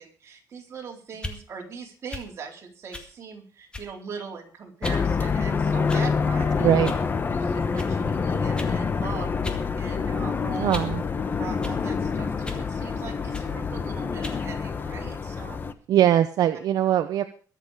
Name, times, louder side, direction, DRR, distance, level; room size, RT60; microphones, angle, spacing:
voice 1, 0.0-6.8 7.4-10.7 11.4-15.6, right 5 dB, 40° right, 1 dB, 4.0 m, -41 dB
sound 1, 1.1-1.4 2.1-2.3 2.9-3.1 3.7-4.0 4.8-5.0 5.9-6.3 6.8-7.0 7.8-7.9 8.6-8.8 9.4-9.6 10.0-11.0 11.6-11.8 12.4-12.7 13.3-13.5 14.2-14.4, left 2 dB, 15° left, 2.0 m, -37 dB
sound 2, 4.8-15.7, left 5 dB, 30° left, 1.1 m, -26 dB
voice 2, 6.6-6.9 10.6-11.0 15.9-17.2, right 11 dB, 70° right, 9 dB, 0.9 m, -21 dB
22.0 x 7.5 x 5.0 m, 0.40 s
cardioid pair, 150°, 7 cm